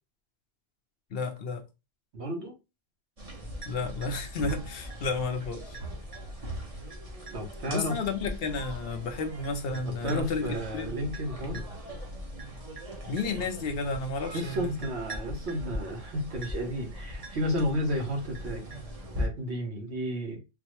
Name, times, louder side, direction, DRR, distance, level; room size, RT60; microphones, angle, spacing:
voice 1, 1.1-1.6 3.7-5.8 7.7-10.9 11.5-11.6 13.1-14.7, left 3 dB, 60° left, 0.7 m, -32 dB
voice 2, 2.1-2.5 7.3-8.0 9.8-11.6 14.3-18.6 19.2-20.4, equal, 60° right, 1.2 m, -32 dB
sound 1, 3.2-19.3, equal, 30° right, 0.9 m, -40 dB
4.0 x 2.0 x 2.9 m
omnidirectional pair, 1.3 m